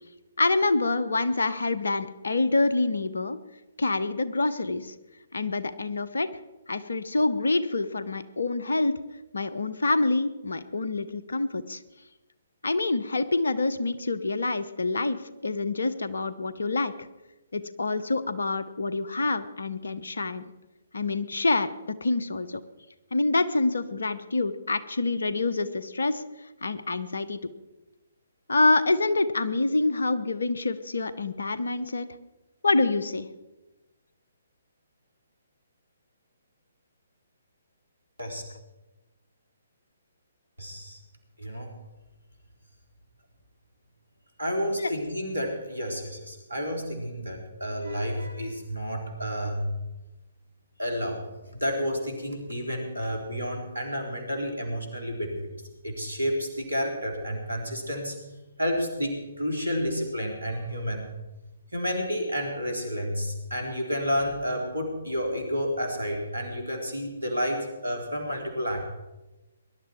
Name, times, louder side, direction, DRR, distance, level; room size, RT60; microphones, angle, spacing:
voice 1, 0.4-3.4 3.8-4.9 5.3-6.3 6.7-8.9 9.3-11.8 12.6-16.9 17.5-20.4 20.9-22.6 23.1-26.2 26.6-27.4 28.5-32.1 32.6-33.3 44.8-44.9, left 3 dB, 65° left, 13 dB, 1.0 m, -26 dB
voice 2, 40.6-41.0 41.4-41.7 44.4-49.7 50.8-51.2 51.5-55.5 55.8-58.2 58.6-61.1 61.7-68.8, equal, 80° right, 3 dB, 3.8 m, -30 dB
20.5 x 11.5 x 4.5 m, 1.1 s
figure-of-eight pair, 130°, 0 cm